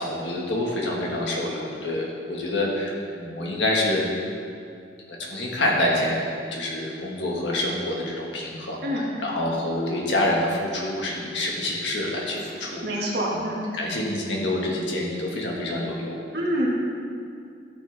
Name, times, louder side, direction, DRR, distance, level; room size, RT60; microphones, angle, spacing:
voice 1, 0.0-4.1 5.1-13.4 13.7-16.1, left 1 dB, 90° left, -2 dB, 1.8 m, -27 dB
voice 2, 12.8-13.6 16.3-16.7, equal, 70° right, -4 dB, 2.0 m, -26 dB
13.0 x 6.3 x 3.5 m, 2.3 s
head